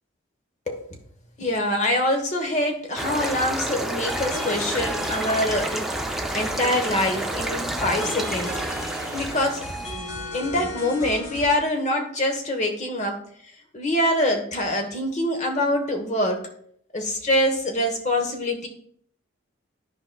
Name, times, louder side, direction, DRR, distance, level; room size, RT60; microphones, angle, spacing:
voice 1, 1.4-8.6 9.1-9.7 10.2-13.2 13.7-16.4 16.9-18.7, left 1 dB, 35° left, 3 dB, 1.0 m, -25 dB
sound 1, 3.0-10.0, right 1 dB, ahead, 0.4 m, -30 dB
sound 2, 4.1-11.5, left 1 dB, 60° left, 2.4 m, -35 dB
12.5 x 4.8 x 2.2 m, 0.64 s
head